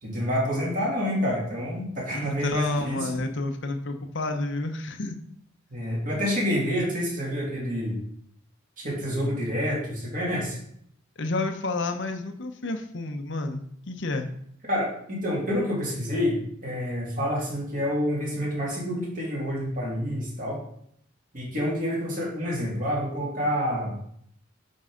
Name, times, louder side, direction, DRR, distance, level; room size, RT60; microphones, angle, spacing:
voice 1, 0.0-3.1 5.7-8.0 8.8-10.6 14.7-20.6 21.3-23.9, equal, 40° right, -4 dB, 2.6 m, -28 dB
voice 2, 2.1-5.2 11.2-14.3, left 2 dB, 60° left, 6 dB, 0.8 m, -30 dB
9.4 x 4.7 x 3.8 m, 0.68 s
head